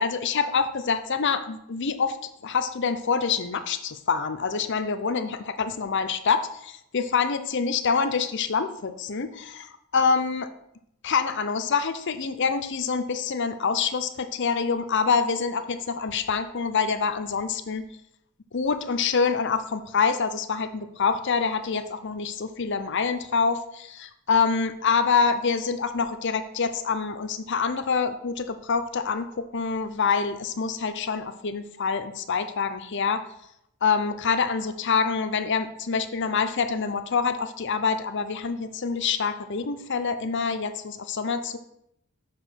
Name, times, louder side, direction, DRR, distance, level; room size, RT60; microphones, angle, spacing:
voice 1, 0.0-2.2 2.4-10.5 11.0-17.8 18.5-33.2 33.8-41.6, left 5 dB, 55° left, 10 dB, 0.6 m, -26 dB
7.3 x 4.9 x 5.8 m, 0.77 s
head